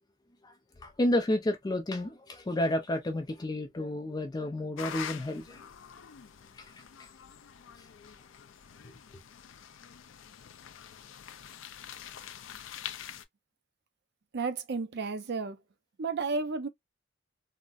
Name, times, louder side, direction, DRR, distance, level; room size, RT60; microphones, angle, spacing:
voice 1, 0.8-5.6 6.5-6.7 7.0-7.1 7.8-7.9, left 1 dB, 20° left, 0.4 m, -31 dB
sound 1, 4.8-13.2, left 9 dB, 80° left, 0.5 m, -45 dB
voice 2, 14.3-15.6 16.0-16.7, right 4 dB, 60° right, 0.5 m, -32 dB
3.8 x 2.0 x 2.3 m
head